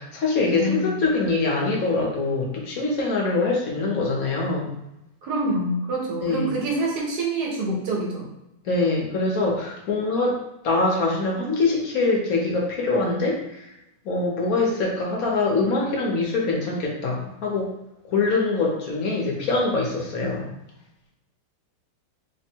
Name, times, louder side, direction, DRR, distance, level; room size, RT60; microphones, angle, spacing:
voice 1, 0.0-4.7 6.2-6.5 8.6-10.4 10.6-13.7 14.0-17.7 18.1-20.5, left 3 dB, 60° left, -1 dB, 1.1 m, -24 dB
voice 2, 0.5-1.0 5.2-8.3, right 1 dB, 70° right, -2 dB, 1.5 m, -26 dB
3.4 x 2.1 x 4.3 m, 0.88 s
omnidirectional pair, 1.8 m